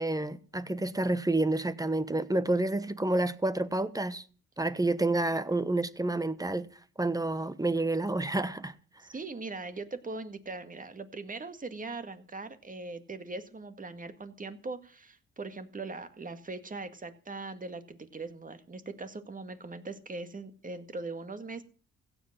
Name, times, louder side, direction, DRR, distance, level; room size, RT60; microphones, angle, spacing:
voice 1, 0.0-4.2 4.6-6.7 7.0-8.7, right 2 dB, 10° right, 1.1 m, -29 dB
voice 2, 9.0-21.6, right 3 dB, 25° right, 1.9 m, -40 dB
16.0 x 7.9 x 7.4 m
cardioid pair, 90°, 30 cm